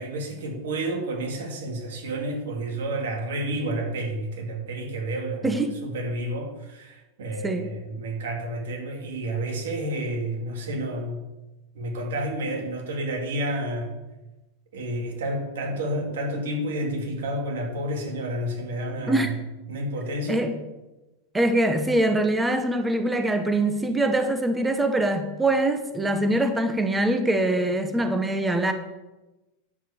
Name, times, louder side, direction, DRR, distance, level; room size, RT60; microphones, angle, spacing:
voice 1, 0.0-5.5 5.8-11.2 11.7-13.9 14.7-19.4 19.7-20.5, right 1 dB, 90° right, 1 dB, 3.4 m, -30 dB
voice 2, 21.3-28.7, right 1 dB, 5° right, 7 dB, 0.9 m, -23 dB
9.7 x 7.4 x 6.9 m, 1.0 s
supercardioid pair, 165°, 0 cm